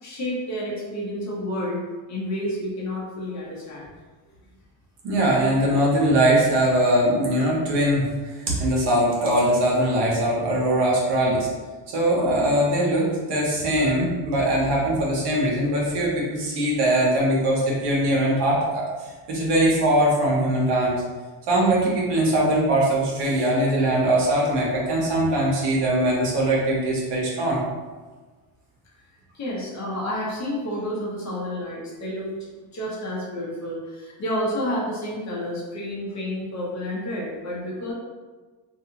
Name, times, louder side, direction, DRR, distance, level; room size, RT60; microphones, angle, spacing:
voice 1, 0.0-1.8 2.1-3.9 29.3-32.3 32.7-37.9, left 1 dB, 35° left, -5 dB, 0.9 m, -30 dB
voice 2, 5.0-8.1 8.4-11.5 11.9-18.8 19.3-21.0 21.5-27.6, right 1 dB, 60° right, -4 dB, 1.0 m, -21 dB
2.7 x 2.4 x 2.8 m, 1.3 s
cardioid pair, 125°, 47 cm